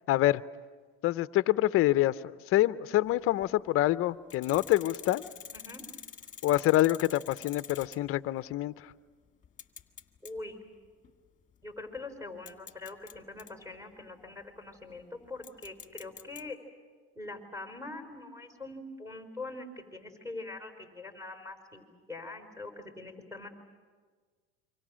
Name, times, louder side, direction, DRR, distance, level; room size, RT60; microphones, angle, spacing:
voice 1, 0.1-0.4 1.0-5.2 6.4-8.7, left 15 dB, 45° left, 0.7 m, -26 dB
sound 1, 3.1-3.5 4.3-8.2 8.5-8.6 9.4-10.4 10.8-11.1 12.0-12.1 12.5-13.5 15.4-16.4, left 7 dB, 25° left, 1.8 m, -46 dB
voice 2, 5.5-5.8 10.2-10.6 11.6-16.6 17.2-23.5, left 2 dB, 10° right, 4.4 m, -43 dB
27.5 x 25.5 x 6.3 m
supercardioid pair, 115°, 30 cm